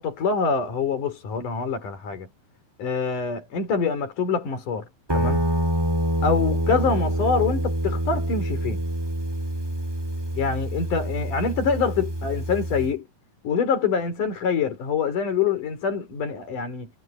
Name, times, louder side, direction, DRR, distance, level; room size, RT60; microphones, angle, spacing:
voice 1, 0.0-2.3 2.8-5.4 6.2-8.8 10.4-13.1 13.4-16.9, left 5 dB, 55° left, 5.2 m, -25 dB
Guitar, 5.1-12.9, right 1 dB, 10° right, 1.7 m, -26 dB
omnidirectional pair, 4.4 m